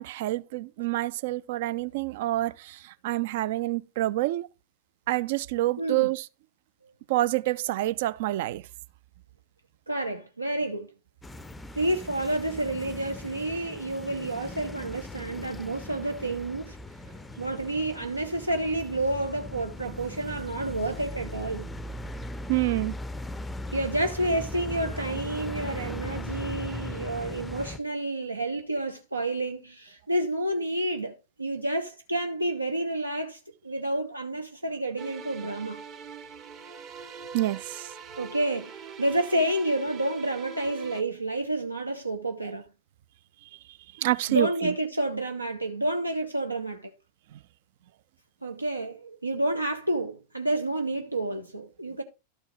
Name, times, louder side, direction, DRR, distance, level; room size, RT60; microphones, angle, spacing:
voice 1, 0.0-4.5 5.1-6.3 7.1-8.6 22.5-22.9 37.3-37.9 44.0-44.7, right 17 dB, 50° right, 0.4 m, -27 dB
voice 2, 5.8-6.1 6.8-6.9 9.9-10.9 11.7-16.8 17.4-21.7 23.7-35.8 38.2-42.7 44.3-46.9 48.4-52.0, right 1 dB, 85° right, 0.8 m, -29 dB
sound 1, 11.2-27.8, left 1 dB, 10° left, 0.5 m, -39 dB
sound 2, 35.0-41.0, right 6 dB, 30° right, 0.9 m, -43 dB
12.5 x 4.4 x 4.8 m
figure-of-eight pair, 90°, 0 cm